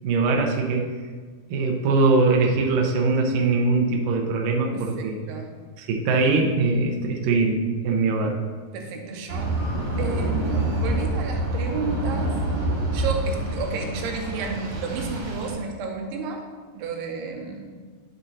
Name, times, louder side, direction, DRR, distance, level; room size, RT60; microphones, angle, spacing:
voice 1, 0.0-1.0 1.5-5.2 5.8-8.4, right 3 dB, 75° right, 1 dB, 2.2 m, -22 dB
voice 2, 4.7-5.5 8.7-9.5 10.0-12.4 12.9-16.4 16.7-17.8, right 4 dB, 90° right, 2 dB, 2.9 m, -31 dB
sound 1, 9.3-15.5, right 1 dB, 50° right, 2.4 m, -27 dB
10.5 x 6.9 x 2.8 m, 1.5 s
omnidirectional pair, 4.6 m